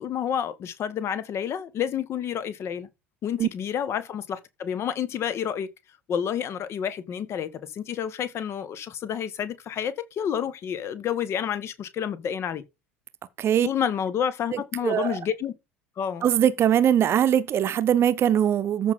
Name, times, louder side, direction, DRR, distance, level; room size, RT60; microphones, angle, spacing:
voice 1, 0.0-2.9 3.2-5.7 6.1-12.6 13.6-15.5 16.0-16.3, left 8 dB, 40° left, 1.6 m, -29 dB
voice 2, 14.5-15.2 16.2-18.9, right 10 dB, 35° right, 1.0 m, -21 dB
14.0 x 5.7 x 3.8 m
figure-of-eight pair, 70°, 7 cm